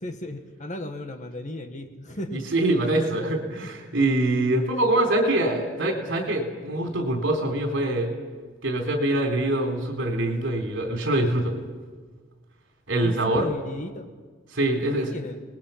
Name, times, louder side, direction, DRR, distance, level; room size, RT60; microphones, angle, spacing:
voice 1, 0.0-2.5 3.6-3.7 13.0-14.1 14.8-15.4, left 1 dB, 40° left, 6 dB, 1.7 m, -35 dB
voice 2, 2.3-8.1 8.6-11.5 12.9-13.5 14.5-15.1, right 1 dB, 65° right, 3 dB, 3.9 m, -24 dB
28.5 x 20.5 x 5.9 m, 1.5 s
head